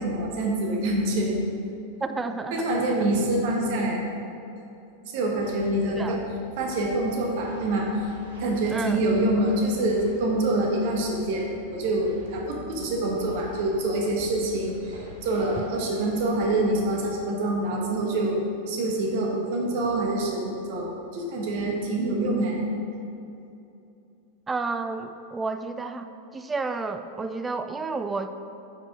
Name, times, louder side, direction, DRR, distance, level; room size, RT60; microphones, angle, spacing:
voice 1, 0.0-1.4 2.5-4.0 5.1-6.2 6.6-8.1 8.4-18.4 18.7-22.6, right 1 dB, 50° right, 0 dB, 1.2 m, -26 dB
voice 2, 2.0-3.0 5.9-6.2 8.7-9.0 24.5-26.1 26.3-28.3, right 3 dB, 15° right, 9 dB, 0.3 m, -31 dB
sound 1, 5.3-17.0, equal, 70° right, 1.5 m, -47 dB
8.6 x 5.3 x 3.7 m, 2.7 s
figure-of-eight pair, 90°, 0 cm